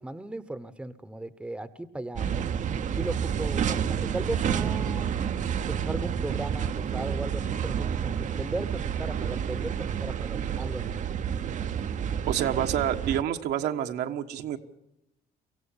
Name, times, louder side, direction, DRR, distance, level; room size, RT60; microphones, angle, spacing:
voice 1, 0.0-2.5 2.9-5.1 5.7-11.0, right 2 dB, 5° right, 14 dB, 1.0 m, -37 dB
sound 1, 2.1-13.2, right 8 dB, 45° right, 0.8 m, -29 dB
voice 2, 12.3-14.6, right 10 dB, 75° right, 5 dB, 1.4 m, -28 dB
24.0 x 15.5 x 7.3 m, 0.85 s
cardioid pair, 110°, 17 cm